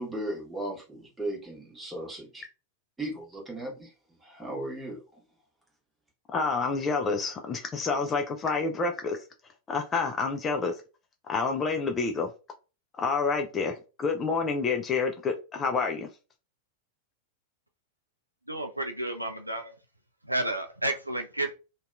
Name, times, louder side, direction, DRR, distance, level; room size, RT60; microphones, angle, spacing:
voice 1, 0.0-2.4 3.0-5.2, right 1 dB, 10° right, 1.1 m, -37 dB
voice 2, 6.3-9.2 9.7-10.8 11.3-12.3 13.0-16.1, left 4 dB, 25° left, 0.4 m, -28 dB
voice 3, 18.5-19.7 20.2-21.5, right 1 dB, 85° right, 0.3 m, -31 dB
2.7 x 2.2 x 2.3 m
figure-of-eight pair, 90°, 0 cm